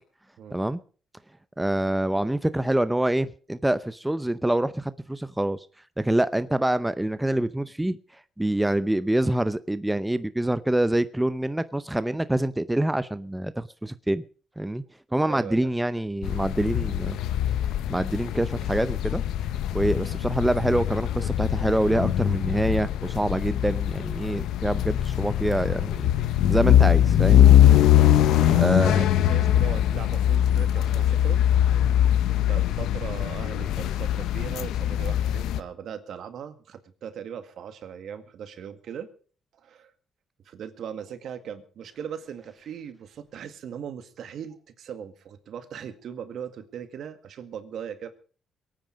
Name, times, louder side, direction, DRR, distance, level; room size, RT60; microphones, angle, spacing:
voice 1, 1.6-5.6 6.0-8.0 8.4-14.2 14.6-14.8 15.1-17.2 17.9-19.2 19.7-26.1 26.5-27.5 28.6-29.0, right 1 dB, 10° right, 14 dB, 0.6 m, -26 dB
voice 2, 15.2-15.7 27.5-27.8 28.1-31.4 31.9-32.2 32.5-39.1 39.6-39.9 40.5-48.1, right 8 dB, 70° right, 10 dB, 2.0 m, -39 dB
sound 1, 16.2-35.6, left 11 dB, 90° left, 0.8 m, -22 dB
22.5 x 9.3 x 5.2 m, 0.41 s
cardioid pair, 95°, 0 cm